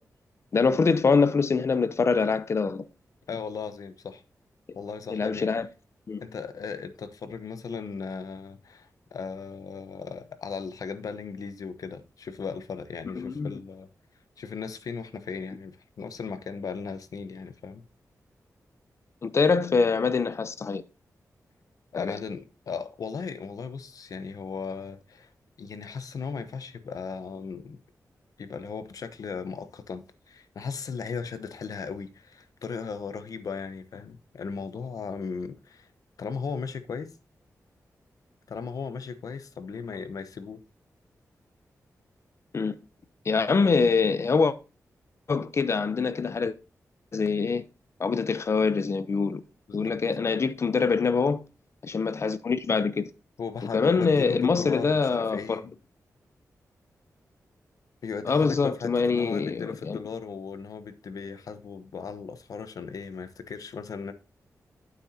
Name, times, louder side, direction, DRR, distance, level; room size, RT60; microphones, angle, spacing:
voice 1, 0.5-2.8 5.1-5.7 6.1-6.2 13.2-13.5 19.2-20.8 22.0-22.1 42.5-42.7 43.3-44.5 45.3-46.5 47.1-47.6 48.0-49.4 49.7-51.4 51.8-53.1 53.7-55.6 58.2-60.0, left 4 dB, 50° left, 0.7 m, -24 dB
voice 2, 3.3-4.2 4.7-5.5 6.2-13.9 14.4-17.8 21.9-25.3 25.6-27.8 28.4-35.9 36.2-37.1 38.5-40.6 49.7-50.0 53.4-55.7 58.0-64.1, left 5 dB, 75° left, 1.0 m, -37 dB
9.1 x 7.9 x 2.8 m
wide cardioid pair, 105°, 6 cm